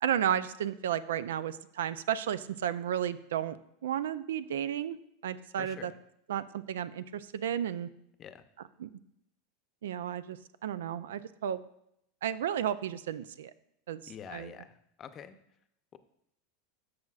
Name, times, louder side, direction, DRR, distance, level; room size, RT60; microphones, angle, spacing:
voice 1, 0.0-3.6 3.8-5.0 5.2-5.9 6.3-7.9 8.8-8.9 9.8-10.4 10.6-11.6 12.2-13.5 13.9-14.0 14.3-14.5, right 10 dB, 80° right, 15 dB, 0.4 m, -33 dB
voice 2, 5.5-5.9 8.2-8.4 14.1-15.4, left 8 dB, 35° left, 10 dB, 0.7 m, -46 dB
13.0 x 6.3 x 2.4 m, 0.76 s
hypercardioid pair, 100°, 0 cm